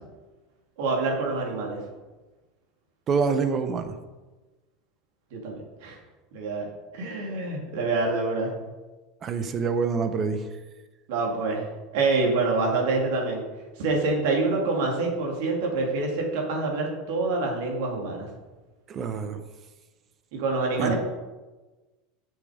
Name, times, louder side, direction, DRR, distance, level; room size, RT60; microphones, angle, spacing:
voice 1, 0.8-1.8 5.3-6.0 6.3-6.7 6.9-8.5 11.1-13.4 13.8-18.3 20.3-21.0, right 3 dB, 70° right, 0 dB, 2.7 m, -26 dB
voice 2, 3.1-4.0 9.2-10.4 18.9-19.4 20.8-20.9, right 5 dB, 35° right, 10 dB, 0.9 m, -26 dB
8.4 x 6.4 x 5.1 m, 1.2 s
supercardioid pair, 125°, 0 cm